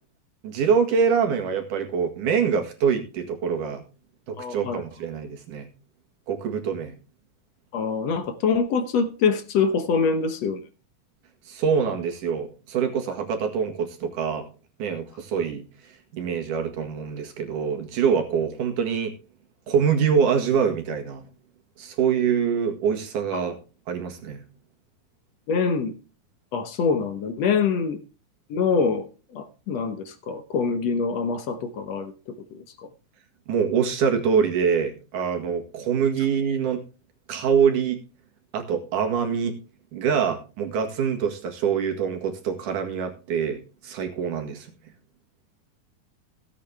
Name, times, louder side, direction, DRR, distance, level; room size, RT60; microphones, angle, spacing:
voice 1, 0.4-3.8 4.3-5.7 6.3-7.0 11.5-14.5 14.8-15.6 16.1-19.2 19.7-21.2 21.8-23.6 23.9-24.4 33.5-36.8 37.3-38.0 38.5-39.6 39.9-44.7, right 7 dB, 75° right, 3.4 m, -24 dB
voice 2, 4.4-4.8 7.7-10.6 23.3-23.4 25.5-25.9 26.5-28.0 28.5-32.1 32.5-32.6, left 5 dB, 60° left, 2.0 m, -25 dB
16.5 x 8.6 x 3.5 m
omnidirectional pair, 3.8 m